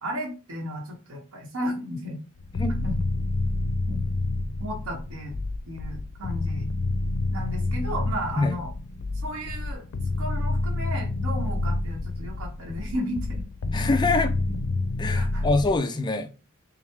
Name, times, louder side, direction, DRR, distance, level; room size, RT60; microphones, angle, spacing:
voice 1, 0.0-2.2 2.8-2.9 3.9-4.0 4.6-5.3 5.7-6.7 7.3-8.7 9.1-9.8 10.2-13.4 14.1-14.2 14.5-14.6 15.1-15.5, equal, 80° right, 1.0 m, -34 dB
sound 1, 2.4-15.8, left 2 dB, 90° left, 0.5 m, -28 dB
voice 2, 13.7-14.3 15.0-16.3, left 3 dB, 20° left, 0.4 m, -24 dB
5.8 x 2.0 x 3.5 m
head